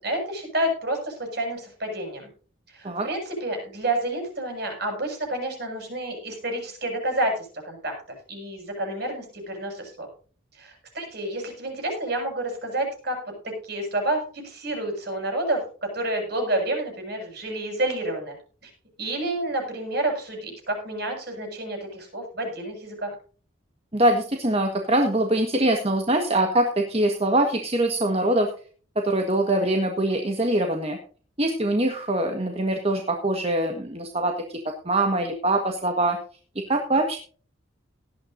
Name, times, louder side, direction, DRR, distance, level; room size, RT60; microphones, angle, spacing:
voice 1, 0.0-2.3 2.7-7.9 8.3-10.1 10.6-13.2 13.4-18.3 18.6-18.7 19.0-23.1, right 1 dB, 55° right, 3 dB, 7.3 m, -29 dB
voice 2, 23.9-28.5 28.9-31.0 31.4-34.6 34.8-36.2 36.7-37.2, right 1 dB, 30° right, 4 dB, 1.5 m, -23 dB
18.0 x 12.0 x 2.7 m, 0.41 s
head